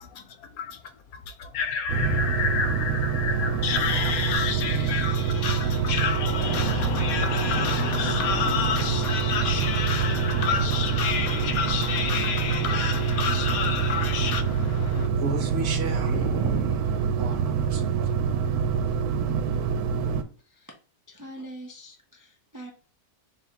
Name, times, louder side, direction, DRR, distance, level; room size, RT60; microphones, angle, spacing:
voice 1, 0.0-15.1, left 6 dB, 80° left, 1.1 m, -29 dB
sound 1, 1.9-20.2, right 6 dB, 90° right, 1.1 m, -26 dB
voice 2, 15.2-18.1, right 4 dB, 60° right, 0.9 m, -32 dB
voice 3, 21.1-22.7, right 1 dB, 30° right, 0.3 m, -43 dB
3.5 x 2.8 x 4.3 m
omnidirectional pair, 1.6 m